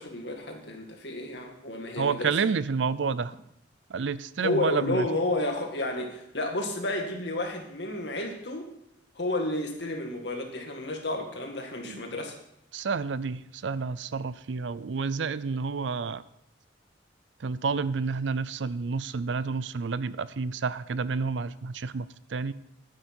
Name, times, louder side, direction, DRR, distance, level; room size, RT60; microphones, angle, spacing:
voice 1, 0.0-2.3 4.4-8.7 9.2-12.4, left 1 dB, 65° left, 2 dB, 2.1 m, -31 dB
voice 2, 2.0-3.3 3.9-5.1 11.8-12.0 12.7-16.2 17.4-22.5, right 5 dB, 80° right, 17 dB, 0.5 m, -30 dB
11.5 x 9.8 x 4.4 m, 0.76 s
head